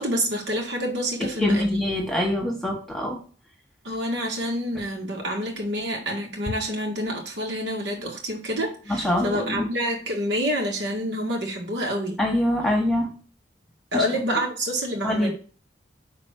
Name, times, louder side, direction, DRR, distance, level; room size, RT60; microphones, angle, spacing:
voice 1, 0.0-1.9 3.8-12.2 13.9-15.3, equal, 70° right, 0 dB, 2.0 m, -28 dB
voice 2, 1.4-3.2 8.9-9.7 12.2-13.1 13.9-14.4 15.0-15.3, left 1 dB, ahead, 0 dB, 1.5 m, -24 dB
6.0 x 4.3 x 6.4 m, 0.39 s
head